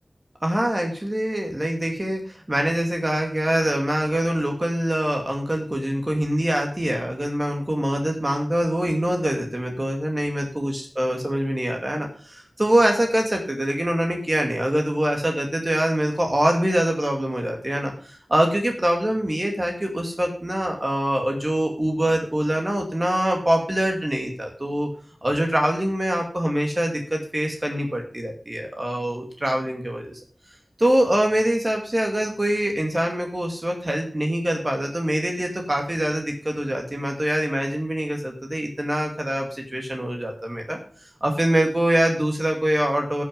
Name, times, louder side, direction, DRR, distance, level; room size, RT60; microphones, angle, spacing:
voice 1, 0.4-24.9 25.2-30.2 30.8-40.8 41.2-43.2, right 1 dB, 30° right, 2 dB, 2.3 m, -24 dB
13.5 x 6.4 x 5.3 m, 0.44 s
wide cardioid pair, 60°, 0 cm